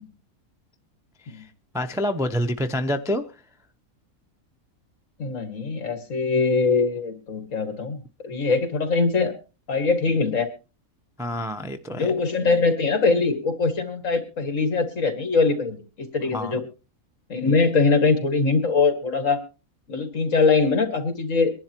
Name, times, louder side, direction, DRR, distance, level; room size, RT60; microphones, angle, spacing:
voice 1, 1.7-3.2 11.2-12.1 16.3-16.6, equal, 5° right, 6 dB, 0.5 m, -27 dB
voice 2, 5.2-9.4 9.7-10.5 11.9-16.6 17.3-19.4 19.9-21.5, left 4 dB, 60° left, 8 dB, 2.3 m, -22 dB
24.0 x 11.0 x 2.9 m, 0.32 s
omnidirectional pair, 1.5 m